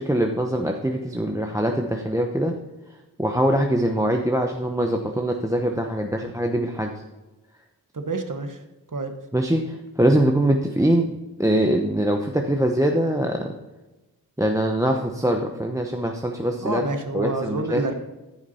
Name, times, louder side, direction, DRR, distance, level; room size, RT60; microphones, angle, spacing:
voice 1, 0.0-2.5 3.2-6.9 9.3-11.1 11.4-13.5 14.4-16.8 17.1-17.9, right 1 dB, 10° right, 3 dB, 0.8 m, -23 dB
voice 2, 7.9-8.6 8.9-9.1 16.6-17.9, right 2 dB, 50° right, 6 dB, 1.3 m, -28 dB
14.0 x 5.9 x 4.3 m, 1.1 s
wide cardioid pair, 55°, 39 cm